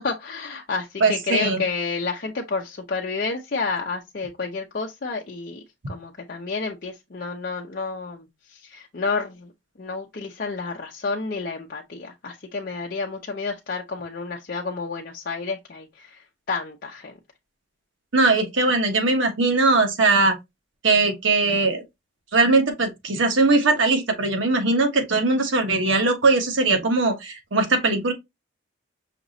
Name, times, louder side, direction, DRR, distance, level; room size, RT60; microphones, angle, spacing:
voice 1, 0.0-8.3 8.5-9.5 9.8-16.2 16.5-17.1, left 4 dB, 50° left, 0.6 m, -30 dB
voice 2, 1.0-1.6 18.1-20.4 20.8-21.8 22.3-28.1, right 3 dB, 85° right, 1.2 m, -20 dB
5.8 x 3.0 x 2.7 m
head